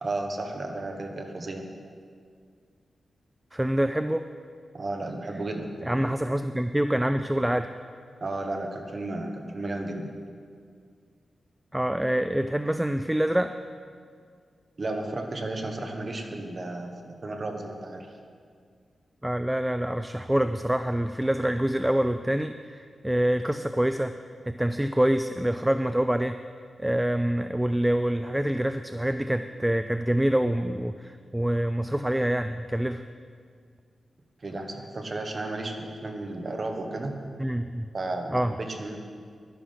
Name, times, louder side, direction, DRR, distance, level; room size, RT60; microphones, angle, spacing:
voice 1, 0.0-1.7 4.7-5.7 8.2-10.1 14.8-18.1 34.4-37.1 37.9-39.0, right 2 dB, 40° right, 4 dB, 1.4 m, -33 dB
voice 2, 3.5-4.2 5.8-7.7 11.7-13.5 19.2-22.8 23.0-24.1 24.5-26.4 26.8-33.0 37.4-37.9 38.3-38.5, right 1 dB, 5° right, 9 dB, 0.3 m, -26 dB
11.5 x 11.0 x 5.7 m, 2.1 s
wide cardioid pair, 125°, 0 cm